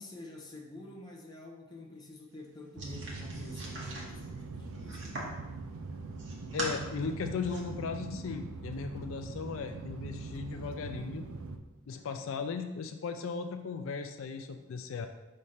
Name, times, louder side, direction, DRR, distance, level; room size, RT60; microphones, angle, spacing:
voice 1, 0.0-5.4, left 2 dB, 20° left, -1 dB, 0.7 m, -48 dB
sound 1, 2.8-5.4 5.9-6.8 7.2-7.6, right 1 dB, 55° right, 1.2 m, -41 dB
sound 2, 2.8-11.6, right 3 dB, 85° right, 0.5 m, -42 dB
voice 2, 6.5-11.3 11.9-15.1, left 5 dB, 70° left, 7 dB, 0.4 m, -37 dB
5.3 x 3.2 x 5.6 m, 1.1 s
head